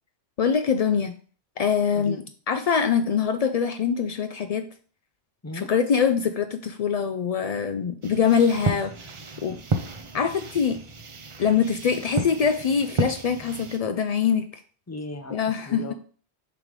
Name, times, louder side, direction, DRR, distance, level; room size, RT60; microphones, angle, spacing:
voice 1, 0.4-1.1 1.6-2.2 2.5-4.7 5.5-8.9 9.4-9.6 10.1-10.8 11.4-14.5 15.3-15.9, left 7 dB, 85° left, 8 dB, 0.3 m, -23 dB
sound 1, 8.0-13.8, right 3 dB, 40° right, 0.5 m, -32 dB
voice 2, 14.9-15.9, left 2 dB, 20° left, 6 dB, 0.5 m, -37 dB
6.9 x 3.2 x 5.1 m, 0.42 s
omnidirectional pair, 1.2 m